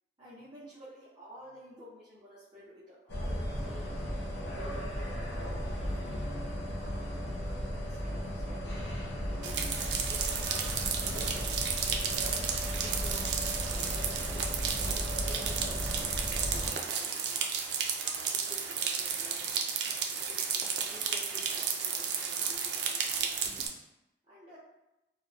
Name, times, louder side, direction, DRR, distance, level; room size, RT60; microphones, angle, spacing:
voice 1, 0.2-3.8 4.3-6.3 6.7-9.4 9.9-10.5 10.9-11.3 12.2-17.5 18.0-19.7 20.2-23.5 24.3-24.6, equal, 25° right, -11 dB, 0.6 m, -52 dB
sound 1, 3.1-16.7, equal, 80° left, 0.5 m, -35 dB
sound 2, 9.4-23.7, right 6 dB, 75° right, 0.3 m, -33 dB
2.7 x 2.1 x 2.3 m, 0.93 s
head